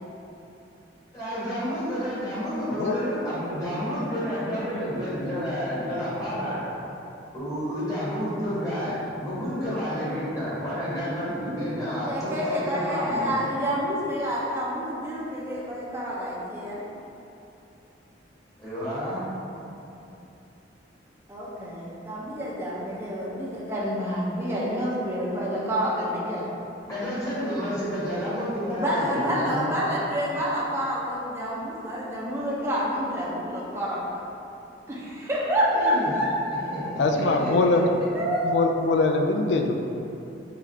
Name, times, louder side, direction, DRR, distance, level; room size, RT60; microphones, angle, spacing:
voice 1, 1.1-6.6 7.3-13.4 18.6-19.3 26.9-29.7 35.7-36.1 36.7-37.8, equal, 20° left, -12 dB, 1.4 m, -30 dB
voice 2, 12.1-16.8 21.3-26.5 28.7-34.0 34.9-37.3 38.1-38.8, equal, 15° right, -7 dB, 0.6 m, -28 dB
voice 3, 37.0-37.9 38.4-39.7, left 3 dB, 70° left, 4 dB, 0.3 m, -22 dB
4.8 x 2.4 x 3.2 m, 2.9 s
head